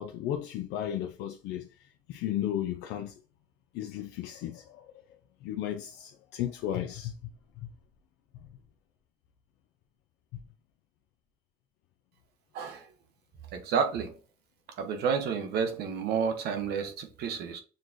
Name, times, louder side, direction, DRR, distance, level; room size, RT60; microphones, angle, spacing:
voice 1, 0.0-1.7 2.1-3.1 3.7-4.8 5.4-7.1 7.6-7.7, left 11 dB, 85° left, 0.4 m, -34 dB
voice 2, 12.5-12.9 13.5-14.2 14.8-17.6, right 6 dB, 75° right, 0.9 m, -30 dB
6.4 x 2.2 x 2.5 m
cardioid pair, 110°, 17 cm